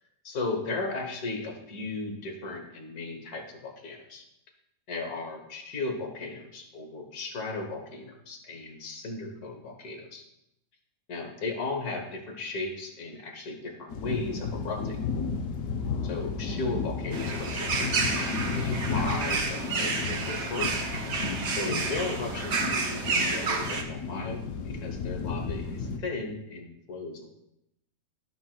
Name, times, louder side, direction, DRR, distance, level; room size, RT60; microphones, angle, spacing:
voice 1, 0.2-4.2 4.9-10.2 11.1-15.0 16.0-17.9 18.2-20.9 21.5-24.5 24.8-27.3, left 3 dB, 90° left, 3 dB, 1.8 m, -36 dB
sound 1, 13.9-26.0, left 5 dB, 65° left, 1.0 m, -33 dB
sound 2, 17.1-23.8, right 4 dB, 55° right, 1.0 m, -30 dB
13.5 x 5.8 x 2.3 m, 0.84 s
omnidirectional pair, 1.6 m